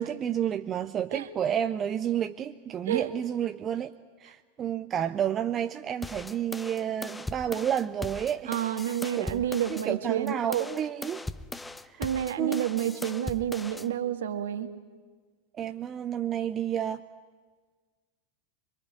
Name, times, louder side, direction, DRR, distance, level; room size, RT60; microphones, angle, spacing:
voice 1, 0.0-3.9 4.2-8.5 8.8-9.4 9.7-11.2 11.9-12.1 12.4-12.7 15.6-17.0, right 9 dB, 25° right, 8 dB, 0.9 m, -30 dB
sound 1, 6.0-9.9 10.3-13.9, left 2 dB, 10° left, 0.8 m, -39 dB
voice 2, 8.5-10.7 12.0-14.7, right 10 dB, 60° right, 8 dB, 1.9 m, -29 dB
25.5 x 23.0 x 9.5 m, 1.5 s
figure-of-eight pair, 90°, 0 cm